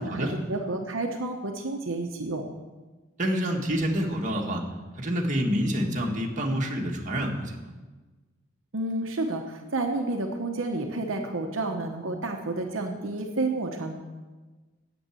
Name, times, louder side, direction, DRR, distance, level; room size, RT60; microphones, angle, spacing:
voice 1, 0.0-2.4 8.7-14.0, right 2 dB, 75° right, 2 dB, 1.1 m, -30 dB
voice 2, 3.2-4.6 5.0-7.7, equal, 40° right, 0 dB, 1.8 m, -27 dB
9.3 x 7.3 x 9.1 m, 1.3 s
head